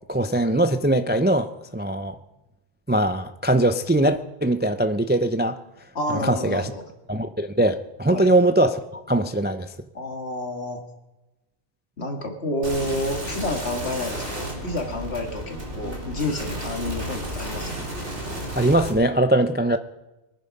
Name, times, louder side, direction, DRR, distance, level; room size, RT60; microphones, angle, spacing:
voice 1, 0.1-2.2 2.9-5.6 6.2-6.7 7.1-9.7 18.6-19.8, right 1 dB, 15° right, 9 dB, 0.4 m, -21 dB
voice 2, 5.9-6.9 8.1-8.3 9.9-10.8 12.0-17.9, left 1 dB, 70° left, 4 dB, 2.2 m, -29 dB
sound 1, 12.6-18.9, right 1 dB, 85° right, 4.1 m, -32 dB
23.5 x 9.8 x 5.3 m, 1.0 s
omnidirectional pair, 1.2 m